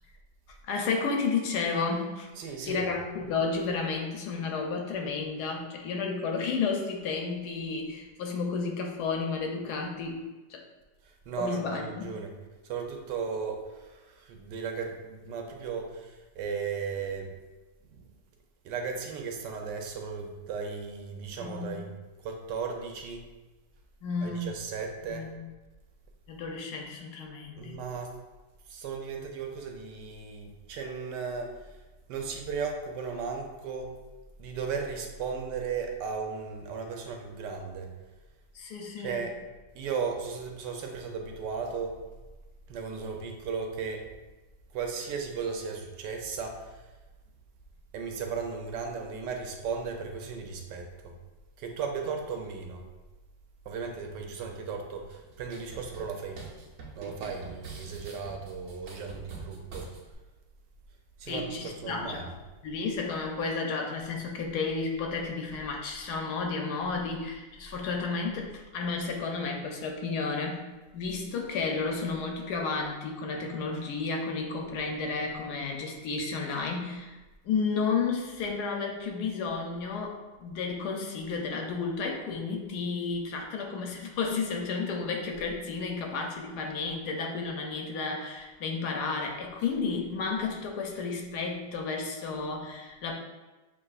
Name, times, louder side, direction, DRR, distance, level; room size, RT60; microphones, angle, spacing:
voice 1, 0.7-2.3 2.7-10.2 10.5-10.6 11.4-12.2 21.3-21.8 24.0-24.5 25.1-25.4 26.3-27.8 38.5-39.2 61.3-62.3 62.6-70.6 70.9-77.2 77.4-93.1, left 4 dB, 70° left, 2 dB, 1.1 m, -32 dB
voice 2, 2.4-2.9 11.0-12.3 12.6-17.4 17.9-18.0 18.6-21.9 22.2-23.3 24.2-25.3 27.5-28.2 28.7-31.8 32.1-34.0 34.4-37.9 39.0-39.3 39.7-42.1 42.7-44.1 44.7-46.8 47.9-51.1 51.6-52.8 53.7-56.5 57.0-59.9 61.2-62.3, right 5 dB, 80° right, 3 dB, 1.2 m, -36 dB
sound 1, 55.1-60.1, right 3 dB, 55° right, 1.0 m, -46 dB
7.1 x 2.6 x 2.4 m, 1.2 s
omnidirectional pair, 1.9 m